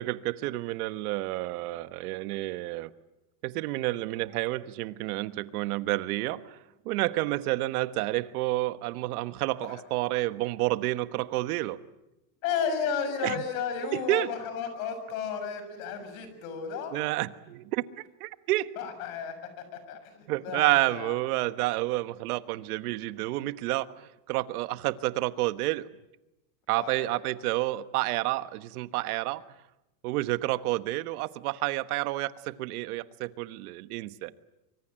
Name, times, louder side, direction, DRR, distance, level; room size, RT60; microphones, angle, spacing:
voice 1, 0.0-2.9 3.4-6.6 6.8-11.8 13.2-13.4 13.9-14.3 16.9-17.8 18.2-18.7 20.3-25.9 26.7-29.4 30.0-34.3, right 18 dB, 80° right, 13 dB, 1.4 m, -29 dB
voice 2, 12.4-17.0 18.8-21.2 26.8-27.2, left 7 dB, 70° left, 9 dB, 6.9 m, -33 dB
25.5 x 25.0 x 8.9 m, 0.94 s
cardioid pair, 180°, 44 cm